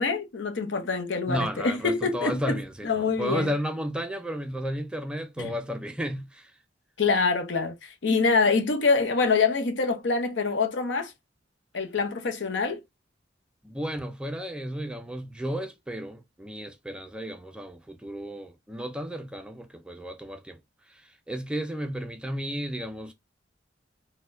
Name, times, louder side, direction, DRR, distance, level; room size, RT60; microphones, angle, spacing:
voice 1, 0.0-2.6 2.8-3.5 5.4-5.5 7.0-11.1 11.7-12.8, left 4 dB, 75° left, 0.7 m, -25 dB
voice 2, 1.3-6.5 13.6-20.6 20.9-23.1, equal, 5° right, 0.4 m, -33 dB
4.2 x 2.1 x 2.4 m
head